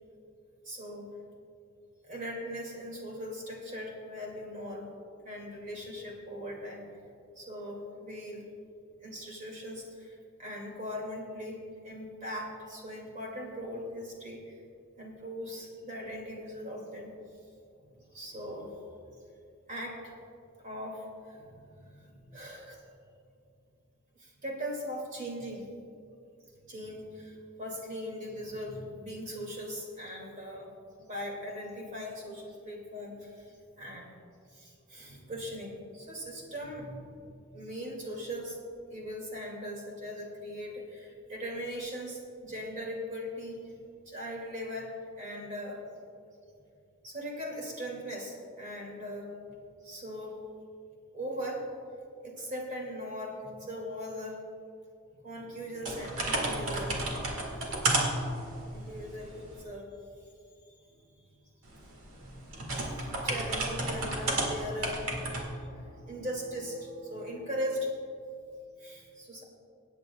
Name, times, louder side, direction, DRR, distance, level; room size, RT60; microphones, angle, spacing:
voice 1, 0.6-1.1 2.0-4.9 5.2-6.8 7.4-8.4 9.0-14.6 15.0-17.1 17.8-19.2 19.7-20.2 20.6-22.8 24.2-25.7 26.5-30.7 31.0-34.1 34.5-37.2 37.5-38.6 38.9-43.7 44.1-45.8 47.0-49.4 49.8-50.4 51.1-51.7 52.2-54.4 55.2-59.9 60.9-61.3 61.6-61.8 62.1-63.0 63.2-68.0 68.8-69.4, equal, 35° right, -1 dB, 2.3 m, -40 dB
sound 1, 55.9-59.6 61.7-65.4, right 2 dB, 70° right, 2.1 m, -32 dB
26.0 x 9.2 x 2.3 m, 2.5 s
head